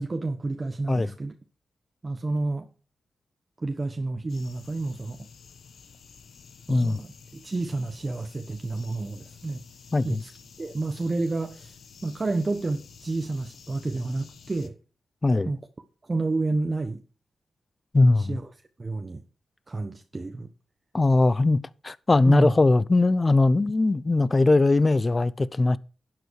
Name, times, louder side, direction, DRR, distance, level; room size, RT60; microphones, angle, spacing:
voice 1, 0.0-1.4 2.0-2.7 3.6-5.3 6.7-9.6 10.0-10.3 10.6-11.7 12.0-14.7 15.4-15.6 16.0-17.0 18.2-18.5 18.8-19.2 19.7-20.5 22.2-22.5, right 3 dB, 35° right, 1.3 m, -30 dB
sound 1, 4.3-14.7, left 5 dB, 75° left, 1.3 m, -50 dB
voice 2, 6.7-7.0 9.9-10.2 15.2-15.5 17.9-18.4 20.9-25.8, left 2 dB, 30° left, 0.6 m, -20 dB
11.5 x 8.0 x 4.7 m
cardioid pair, 65°, 0 cm